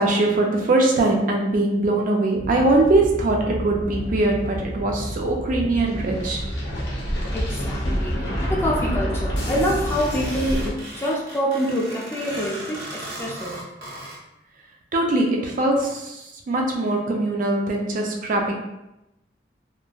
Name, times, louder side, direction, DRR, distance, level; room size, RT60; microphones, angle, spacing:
voice 1, 0.0-6.4 14.9-16.2 16.5-18.5, right 2 dB, 50° right, 0 dB, 0.4 m, -21 dB
sound 1, 2.3-10.7, equal, 80° left, 0.8 m, -28 dB
voice 2, 7.3-8.1 8.4-13.6, equal, 15° left, -4 dB, 0.4 m, -26 dB
sound 2, 9.8-14.2, right 1 dB, 75° right, 1.0 m, -37 dB
3.2 x 2.1 x 2.2 m, 0.89 s
head